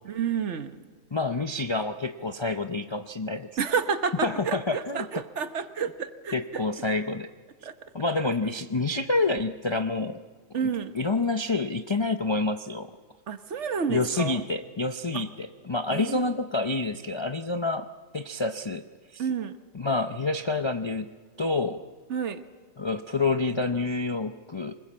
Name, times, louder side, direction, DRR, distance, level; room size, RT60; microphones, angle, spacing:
voice 1, 0.0-0.8 3.6-6.6 7.6-7.9 10.5-11.0 13.3-14.4 15.1-15.2 15.9-16.4 19.2-19.5 22.1-22.4, right 6 dB, 55° right, 10 dB, 1.2 m, -30 dB
voice 2, 1.1-3.5 4.2-5.1 6.3-7.3 7.9-10.2 10.9-13.0 13.9-18.8 19.1-19.2 19.7-21.1 21.4-21.8 22.8-24.7, left 3 dB, 45° left, 8 dB, 0.3 m, -28 dB
24.0 x 20.5 x 7.4 m, 1.5 s
omnidirectional pair, 1.5 m